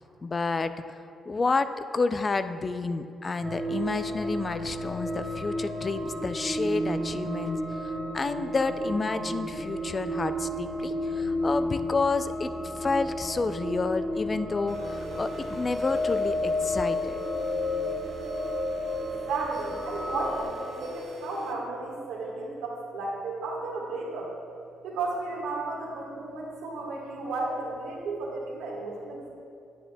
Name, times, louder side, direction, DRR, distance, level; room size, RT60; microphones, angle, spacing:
voice 1, 0.2-1.0 1.3-12.5 12.8-17.2, left 3 dB, 30° left, 11 dB, 0.3 m, -30 dB
sound 1, 3.4-20.4, left 1 dB, 35° right, 1.8 m, -32 dB
sound 2, 14.7-21.5, right 1 dB, 55° right, 0.7 m, -41 dB
voice 2, 19.0-24.3 24.8-29.3, right 3 dB, 90° right, -2 dB, 1.4 m, -33 dB
9.5 x 8.2 x 2.2 m, 2.6 s
cardioid pair, 90°, 0 cm